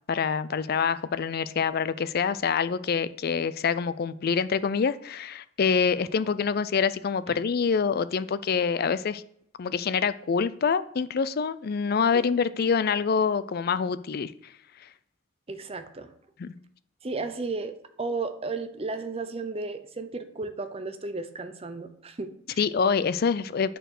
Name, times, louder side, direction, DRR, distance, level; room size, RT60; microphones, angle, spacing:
voice 1, 0.1-9.2 9.6-14.3 16.4-16.5 22.6-23.8, left 6 dB, 45° left, 0.4 m, -26 dB
voice 2, 15.5-16.1 17.0-17.7 18.0-22.6, right 3 dB, 30° right, 0.7 m, -34 dB
9.0 x 4.4 x 6.5 m
head